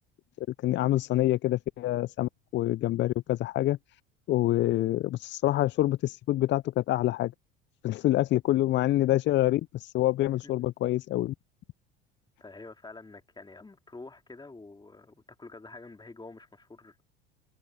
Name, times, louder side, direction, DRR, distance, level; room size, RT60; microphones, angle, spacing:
voice 1, 0.4-3.8 4.3-7.3 7.8-11.3, left 15 dB, 35° left, 0.5 m, -26 dB
voice 2, 12.4-17.1, left 3 dB, 15° left, 3.3 m, -47 dB
hypercardioid pair, 75°, 31 cm